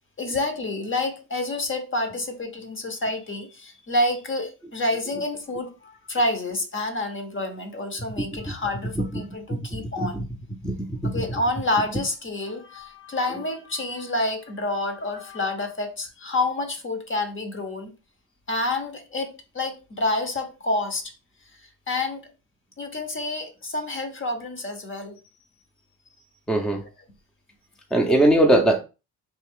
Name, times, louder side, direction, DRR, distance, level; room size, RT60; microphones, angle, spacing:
voice 1, 0.2-10.2 11.0-17.9 18.5-21.0 21.9-22.2 22.8-25.2 28.2-28.3, left 2 dB, 30° left, 0.8 m, -28 dB
voice 2, 10.6-11.1 26.5-26.8 27.9-28.8, right 1 dB, ahead, 0.6 m, -19 dB
3.3 x 2.3 x 3.6 m
cardioid pair, 80°, 41 cm